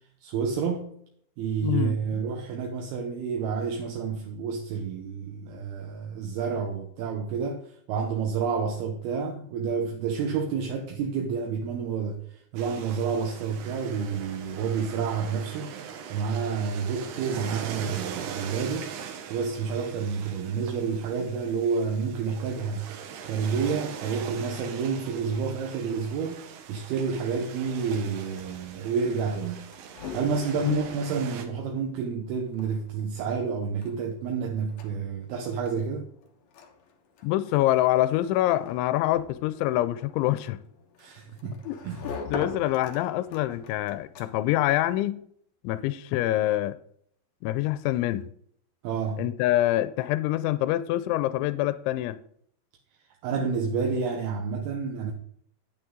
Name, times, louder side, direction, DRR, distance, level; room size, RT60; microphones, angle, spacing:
voice 1, 0.2-0.9 1.4-15.7 16.1-18.9 19.3-22.9 23.2-29.7 30.1-36.1 41.0-41.6 41.8-42.0 48.8-49.2 53.2-55.1, right 6 dB, 70° right, 2.7 m, -29 dB
voice 2, 1.6-2.2 30.6-30.8 37.2-40.6 41.6-41.7 42.3-45.2 45.6-46.8 47.4-48.3 49.2-52.2, left 15 dB, 90° left, 3.0 m, -25 dB
sound 1, 12.6-31.5, right 8 dB, 85° right, 3.7 m, -41 dB
sound 2, 28.1-44.6, left 4 dB, 65° left, 1.8 m, -44 dB
10.5 x 8.9 x 3.7 m
omnidirectional pair, 5.3 m